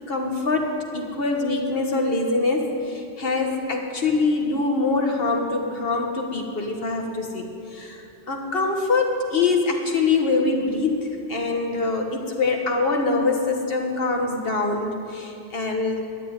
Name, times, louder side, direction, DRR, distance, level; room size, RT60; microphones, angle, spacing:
voice 1, 0.1-8.0 8.3-16.0, left 3 dB, 50° left, 2 dB, 1.7 m, -24 dB
12.0 x 8.5 x 9.4 m, 2.7 s
omnidirectional pair, 1.3 m